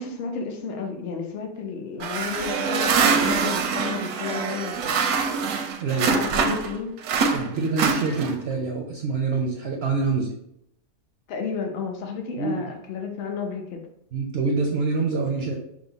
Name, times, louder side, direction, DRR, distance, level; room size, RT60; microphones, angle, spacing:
voice 1, 0.0-5.0 6.1-6.9 11.3-13.8, left 5 dB, 55° left, 3 dB, 0.8 m, -32 dB
sound 1, 2.0-6.7 7.0-8.5, right 5 dB, 85° right, 1.1 m, -24 dB
voice 2, 5.8-6.2 7.3-10.3 12.4-12.6 14.1-15.5, right 4 dB, 65° right, 1 dB, 0.6 m, -25 dB
6.1 x 2.0 x 3.9 m, 0.78 s
omnidirectional pair, 1.6 m